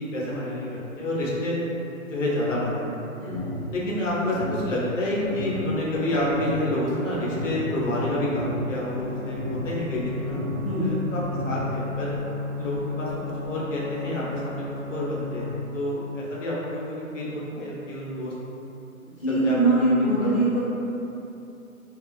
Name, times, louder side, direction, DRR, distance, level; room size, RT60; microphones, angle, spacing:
voice 1, 0.0-1.6 2.1-2.8 3.1-3.2 3.7-10.4 10.8-12.2 12.6-13.1 13.5-18.3 19.3-20.4, left 1 dB, 60° left, -6 dB, 0.8 m, -28 dB
voice 2, 3.2-3.6 10.6-10.9 19.0-20.6, right 2 dB, 25° left, -15 dB, 0.4 m, -23 dB
sound 1, 3.3-3.7 4.3-4.7 5.3-5.7 6.3-6.7 7.3-7.7 8.3-8.7 9.3-9.7 10.3-10.7 11.3-11.7, equal, 30° right, 0.6 m, -34 dB
sound 2, 3.4-3.5 3.7-3.8 4.1-4.2 4.4-4.7 5.2-5.3 5.6-5.7 5.9-6.6 7.1-7.2 7.5-7.6 7.8-7.9 8.2-8.5 9.0-9.1 9.3-9.4 9.7-10.3 10.9-11.0 11.2-11.3 11.6-11.7 11.9-12.2 12.7-12.8 13.1-13.2 13.4-13.5, right 1 dB, 75° right, 1.1 m, -45 dB
sound 3, 5.2-15.6, left 4 dB, 5° right, 0.9 m, -35 dB
2.4 x 2.3 x 2.4 m, 2.9 s
figure-of-eight pair, 145°, 42 cm